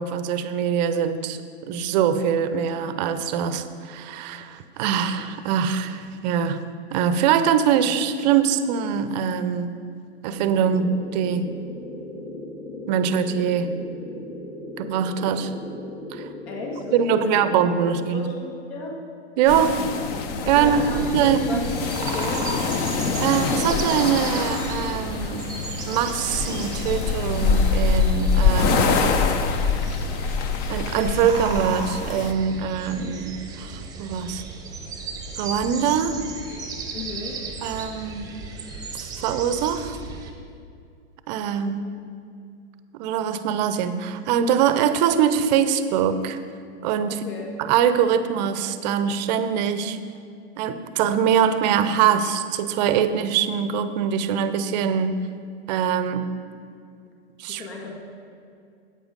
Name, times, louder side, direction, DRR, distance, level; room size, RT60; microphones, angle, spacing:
voice 1, 0.0-9.8 10.2-11.5 12.9-13.8 14.8-15.5 16.1-16.3 16.9-18.3 19.4-19.8 20.5-21.6 23.2-25.5 25.8-28.9 30.7-34.4 35.4-36.2 37.6-38.3 38.9-40.0 41.3-41.8 42.9-46.4 46.8-47.2 47.6-50.0 50.6-55.1 55.7-56.3 57.4-57.7, right 8 dB, 40° right, 11 dB, 0.6 m, -23 dB
sound 1, 10.3-17.9, left 1 dB, 45° left, 2.5 m, -37 dB
voice 2, 16.5-17.4 17.9-18.9 20.5-22.5 36.9-37.4 47.1-47.5 57.5-58.0, left 3 dB, 60° left, -1 dB, 2.0 m, -34 dB
sound 2, 19.5-32.3, left 5 dB, 30° left, 0.6 m, -24 dB
sound 3, 20.6-40.3, right 3 dB, 10° right, 0.9 m, -35 dB
8.8 x 7.9 x 5.1 m, 2.3 s
hypercardioid pair, 125°, 35 cm